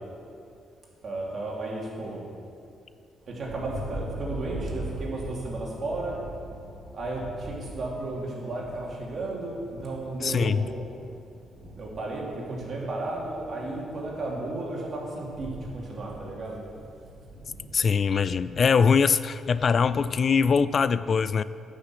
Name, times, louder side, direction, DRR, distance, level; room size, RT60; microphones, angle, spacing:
voice 1, 1.0-2.2 3.3-6.2 6.9-10.8 11.7-16.6, right 2 dB, 50° right, -3 dB, 2.8 m, -33 dB
Thunder, 3.2-20.7, right 1 dB, 35° right, 2.2 m, -42 dB
voice 2, 10.2-10.7 17.7-21.4, left 6 dB, 45° left, 16 dB, 0.3 m, -22 dB
9.6 x 6.4 x 7.6 m, 2.5 s
cardioid pair, 90°, 0 cm